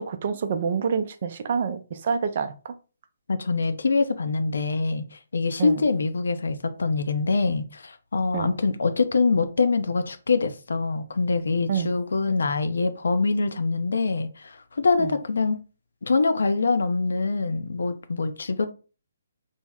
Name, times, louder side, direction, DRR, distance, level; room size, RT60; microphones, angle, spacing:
voice 1, 0.0-2.7 5.6-5.8 8.3-8.5 11.7-11.9 15.0-15.1, right 6 dB, 50° right, 0.4 m, -27 dB
voice 2, 3.3-15.6 16.0-18.7, left 4 dB, 75° left, 0.5 m, -24 dB
3.5 x 2.1 x 3.5 m
hypercardioid pair, 145°, 0 cm